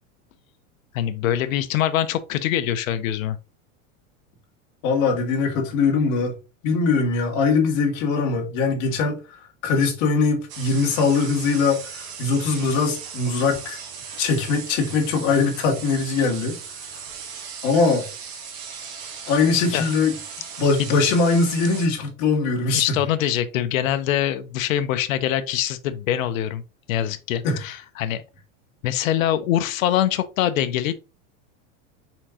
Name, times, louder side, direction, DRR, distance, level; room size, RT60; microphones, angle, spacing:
voice 1, 0.9-3.4 19.5-19.9 20.8-20.9 22.7-26.6 26.9-28.2 28.8-30.9, left 11 dB, 90° left, 0.7 m, -24 dB
voice 2, 4.8-6.3 6.6-9.2 9.6-13.8 14.2-16.6 17.6-18.1 19.3-20.2 20.6-23.0 27.4-27.6, left 4 dB, 50° left, 1.7 m, -21 dB
sound 1, 10.5-21.9, right 6 dB, 55° right, 1.4 m, -37 dB
4.4 x 3.7 x 2.8 m
supercardioid pair, 135°, 39 cm